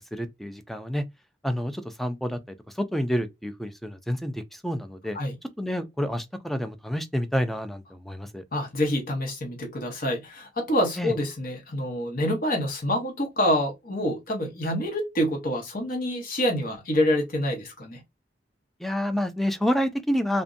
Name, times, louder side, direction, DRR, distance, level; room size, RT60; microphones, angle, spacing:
voice 1, 0.1-1.0 1.4-5.2 5.6-8.4 11.0-11.1 18.8-20.4, equal, ahead, 0.3 m, -28 dB
voice 2, 8.5-18.0, left 1 dB, 55° left, 1.0 m, -27 dB
2.5 x 2.1 x 2.4 m
head